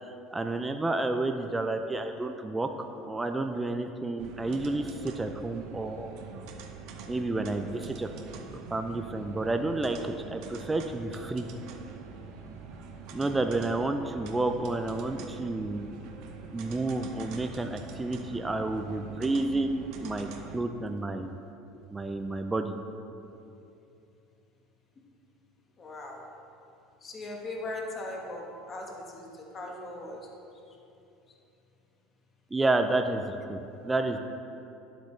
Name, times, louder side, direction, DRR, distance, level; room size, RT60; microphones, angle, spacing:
voice 1, 0.0-6.1 7.1-8.1 8.7-11.5 13.1-15.9 16.5-20.3 20.5-21.3 21.9-22.7 32.5-34.2, right 2 dB, 10° right, 6 dB, 0.4 m, -30 dB
sound 1, 4.2-20.6, right 4 dB, 60° right, 0.8 m, -44 dB
voice 2, 25.8-26.3 27.0-30.3 30.7-30.8, left 2 dB, 25° left, 0 dB, 1.2 m, -39 dB
11.0 x 7.9 x 3.2 m, 2.8 s
cardioid pair, 150°, 0 cm